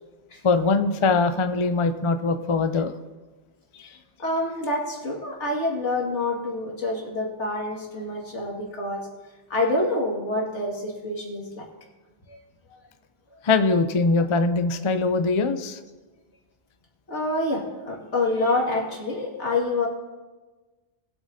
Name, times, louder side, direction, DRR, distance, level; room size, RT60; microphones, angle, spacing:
voice 1, 0.4-2.9 3.8-3.9 13.4-15.8, left 3 dB, 35° left, 9 dB, 0.5 m, -22 dB
voice 2, 4.2-9.1 9.5-11.7 12.3-12.4 17.1-19.9, left 2 dB, 80° left, -1 dB, 2.4 m, -27 dB
20.5 x 8.4 x 2.8 m, 1.2 s
omnidirectional pair, 1.2 m